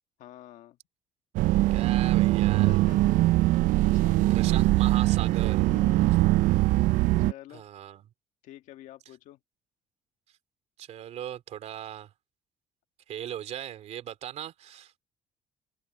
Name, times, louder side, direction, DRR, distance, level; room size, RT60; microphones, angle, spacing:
voice 1, 0.2-0.8 1.8-3.1 3.4-3.6 3.8-4.8 5.7-6.4 7.2-7.7 8.4-9.4, left 14 dB, 80° left, 1.7 m, -48 dB
sound 1, 1.4-7.3, right 17 dB, 85° right, 0.4 m, -22 dB
voice 2, 1.7-2.7 4.3-5.7 7.5-8.0 10.8-12.1 13.1-15.0, right 11 dB, 60° right, 3.1 m, -38 dB
cardioid pair, 130°, 13 cm